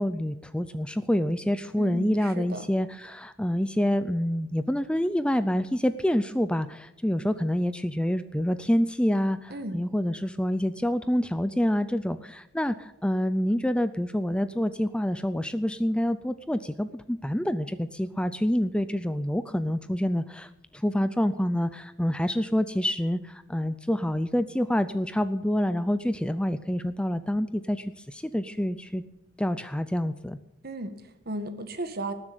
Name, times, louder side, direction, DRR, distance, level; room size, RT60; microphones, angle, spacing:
voice 1, 0.0-29.0 29.4-30.4, equal, 5° left, 12 dB, 0.5 m, -27 dB
voice 2, 1.8-2.7 9.5-9.8 30.6-32.1, right 1 dB, 50° right, 9 dB, 1.7 m, -35 dB
19.0 x 7.7 x 9.0 m, 0.87 s
head